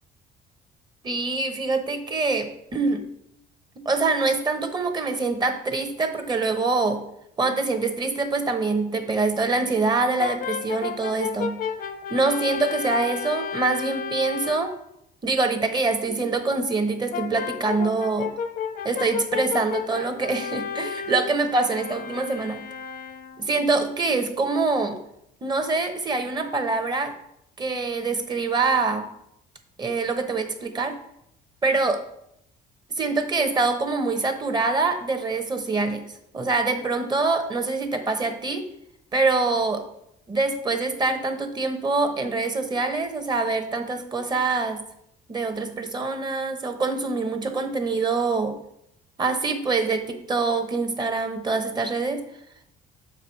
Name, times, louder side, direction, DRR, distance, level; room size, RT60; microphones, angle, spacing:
voice 1, 1.0-3.0 3.8-7.0 7.4-11.6 12.1-14.7 15.2-18.3 18.8-22.6 23.4-25.0 25.4-27.1 27.6-29.1 29.8-31.0 31.6-32.0 32.9-36.0 36.3-38.6 39.1-39.8 40.3-44.8 45.3-48.6 49.2-52.2, right 3 dB, 25° right, 6 dB, 1.0 m, -25 dB
Brass instrument, 10.2-14.8 17.1-23.5, left 7 dB, 55° left, 0.6 m, -32 dB
6.8 x 4.9 x 4.6 m, 0.76 s
cardioid pair, 110°, 17 cm